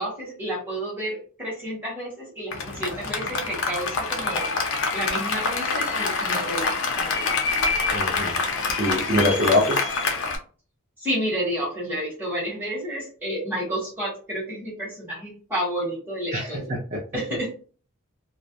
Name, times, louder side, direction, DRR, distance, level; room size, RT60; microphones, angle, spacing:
voice 1, 0.0-7.2 11.0-16.7 17.1-17.5, equal, 10° right, -5 dB, 1.0 m, -31 dB
Applause, 2.5-10.4, left 4 dB, 70° left, 0.5 m, -26 dB
voice 2, 7.9-8.4 8.7-9.9 16.3-17.0, left 1 dB, 35° right, -4 dB, 0.5 m, -24 dB
2.3 x 2.0 x 2.7 m, 0.39 s
head